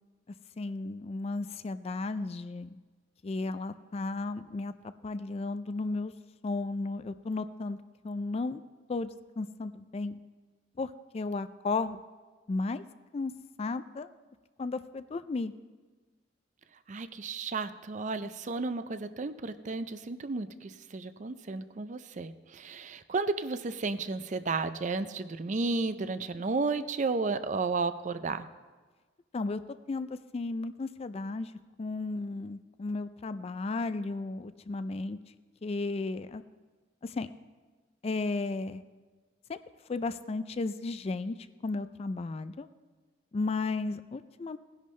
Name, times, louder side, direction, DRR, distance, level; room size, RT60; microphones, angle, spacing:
voice 1, 0.6-2.8 3.2-4.7 5.0-6.1 6.4-7.8 8.0-8.6 8.9-9.1 9.4-10.2 10.8-12.0 12.5-12.8 13.1-13.3 13.6-14.1 14.6-15.5 29.3-29.6 29.9-30.1 30.3-31.5 31.8-35.2 35.6-36.4 37.0-37.3 38.0-38.8 39.5-39.6 39.9-41.4 41.6-42.7 43.3-44.6, left 3 dB, 30° left, 12 dB, 0.3 m, -34 dB
voice 2, 16.9-28.5, right 3 dB, 40° right, 11 dB, 0.4 m, -33 dB
17.5 x 10.5 x 3.2 m, 1.4 s
head